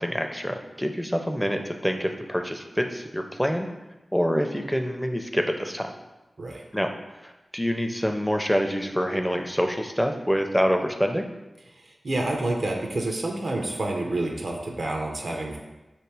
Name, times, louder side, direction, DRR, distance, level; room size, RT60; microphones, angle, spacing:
voice 1, 0.0-3.7 4.1-5.9 6.7-6.9 7.2-11.2, equal, ahead, 4 dB, 0.4 m, -26 dB
voice 2, 11.8-15.6, right 2 dB, 70° right, 1 dB, 0.6 m, -28 dB
3.0 x 3.0 x 4.6 m, 1.0 s
wide cardioid pair, 55°, 0 cm